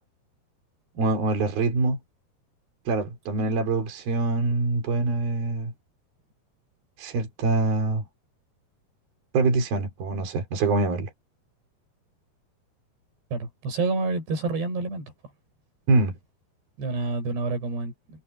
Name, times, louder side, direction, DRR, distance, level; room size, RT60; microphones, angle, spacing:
voice 1, 1.0-2.0 2.9-5.7 7.0-8.0 9.3-11.1 15.9-16.1, right 3 dB, 65° right, 5.6 m, -24 dB
voice 2, 13.3-15.1 16.8-18.2, right 3 dB, 85° right, 8.9 m, -28 dB
omnidirectional pair, 4.7 m